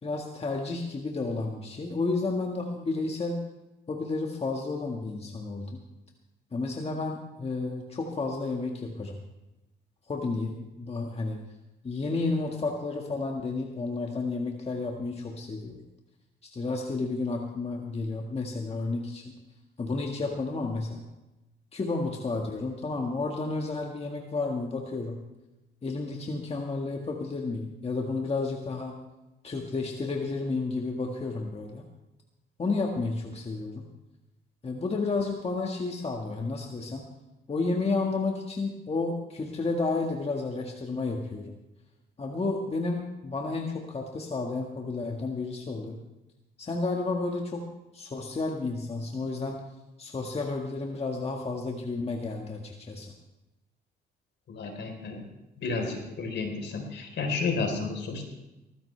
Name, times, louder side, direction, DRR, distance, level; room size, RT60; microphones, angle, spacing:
voice 1, 0.0-3.4 3.9-5.7 6.5-9.2 10.1-11.4 11.8-15.8 16.4-19.3 19.8-21.0 21.7-25.2 25.8-29.0 29.4-31.8 32.6-33.8 34.6-37.0 37.5-41.5 42.2-46.0 46.6-47.7 47.9-49.6 50.0-53.1, left 3 dB, 30° left, 1 dB, 1.7 m, -31 dB
voice 2, 54.5-55.2 55.6-58.2, left 4 dB, 65° left, 3 dB, 4.0 m, -31 dB
19.0 x 14.5 x 3.4 m, 0.99 s
cardioid pair, 90°, 20 cm